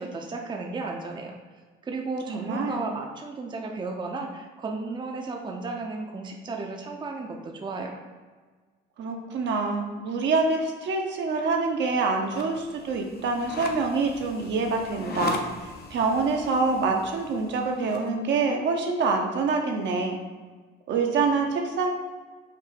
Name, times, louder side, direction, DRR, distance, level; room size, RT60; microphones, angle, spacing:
voice 1, 0.0-1.4 1.8-8.0, right 3 dB, 20° right, 2 dB, 0.5 m, -34 dB
voice 2, 2.3-2.8 9.0-20.2 20.9-21.9, right 4 dB, 60° right, 2 dB, 0.7 m, -26 dB
sound 1, 12.2-18.1, left 3 dB, 50° left, 0.6 m, -39 dB
5.2 x 2.0 x 4.1 m, 1.4 s
cardioid pair, 90°, 20 cm